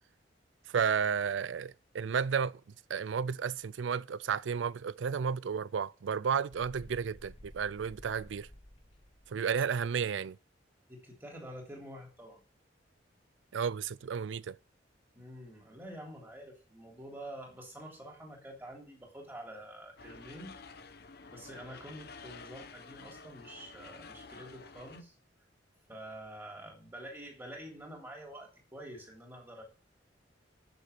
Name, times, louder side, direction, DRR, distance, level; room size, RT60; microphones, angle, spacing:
voice 1, 0.7-2.6 2.9-8.5 9.3-10.4 13.5-14.6, right 6 dB, 85° right, 0.4 m, -32 dB
sound 1, 6.5-10.1, equal, 35° left, 1.8 m, -54 dB
voice 2, 10.9-12.4 15.1-20.5 21.3-25.1 25.9-29.6, right 1 dB, 15° right, 3.3 m, -47 dB
sound 2, 20.0-25.0, left 4 dB, 60° left, 1.0 m, -50 dB
8.1 x 6.8 x 8.2 m
head